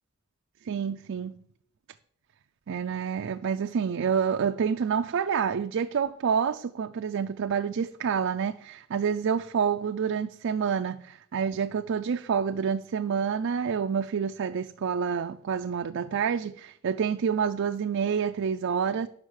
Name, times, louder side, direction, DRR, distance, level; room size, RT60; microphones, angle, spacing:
voice 1, 0.6-1.4 2.7-19.1, right 7 dB, 60° right, 0.4 m, -28 dB
11.0 x 5.5 x 6.4 m
head